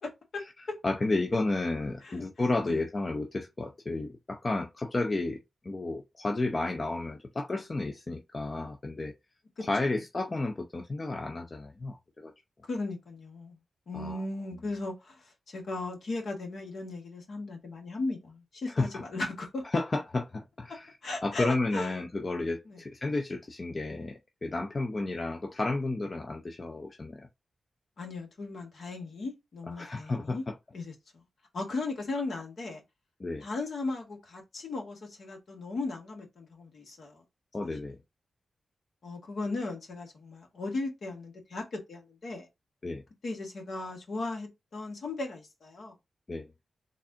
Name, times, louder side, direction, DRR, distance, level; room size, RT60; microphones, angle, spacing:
voice 1, 0.8-9.1 9.6-12.3 13.9-14.2 18.7-19.0 19.7-20.9 21.2-27.3 29.7-30.5 33.2-33.5 37.5-38.0 42.8-43.0 46.3-46.5, left 2 dB, 45° left, 0.6 m, -32 dB
voice 2, 12.6-13.6 13.9-19.6 21.0-22.0 22.7-22.8 28.0-30.4 30.7-30.9 31.5-32.8 33.4-37.2 39.0-42.5 43.2-45.9, left 2 dB, 75° left, 1.4 m, -37 dB
4.1 x 2.5 x 3.6 m
cardioid pair, 45°, 0 cm